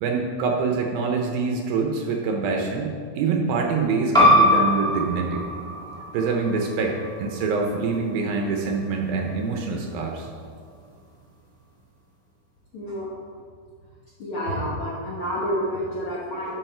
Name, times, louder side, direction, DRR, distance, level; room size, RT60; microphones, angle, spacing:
voice 1, 0.0-5.4 6.1-10.3, right 4 dB, 75° right, 1 dB, 2.4 m, -25 dB
sound 1, 4.1-9.3, left 1 dB, 5° left, 0.3 m, -23 dB
voice 2, 12.7-13.1 14.2-16.6, equal, 85° left, -6 dB, 1.1 m, -29 dB
11.0 x 7.1 x 4.5 m, 2.1 s
omnidirectional pair, 4.6 m